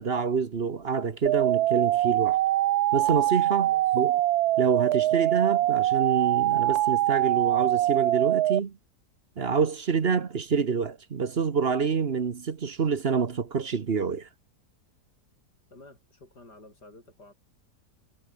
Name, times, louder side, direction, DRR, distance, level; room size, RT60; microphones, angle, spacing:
voice 1, 0.0-2.4 2.9-4.1 4.6-8.8 9.4-14.3, right 5 dB, 40° right, 1.2 m, -27 dB
sound 1, 1.3-8.6, right 14 dB, 75° right, 1.1 m, -23 dB
voice 2, 3.6-4.0 15.7-17.3, left 2 dB, 85° left, 8.0 m, -51 dB
omnidirectional pair, 1.7 m